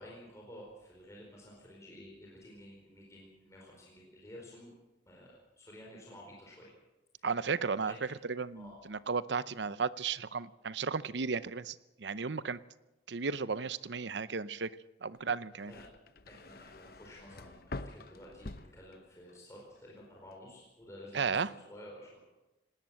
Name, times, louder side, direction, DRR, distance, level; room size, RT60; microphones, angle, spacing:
voice 1, 0.0-4.7 5.1-6.7 7.1-7.3 7.8-8.2 8.5-8.7 15.7-15.9 16.3-22.2, left 1 dB, 15° left, -3 dB, 4.5 m, -52 dB
voice 2, 7.2-12.6 13.1-14.7 15.0-15.7 21.1-21.5, right 5 dB, 75° right, 16 dB, 0.7 m, -34 dB
sound 1, 15.2-19.4 19.8-20.3, left 2 dB, 55° left, 0.9 m, -47 dB
19.0 x 18.5 x 7.6 m, 1.0 s
head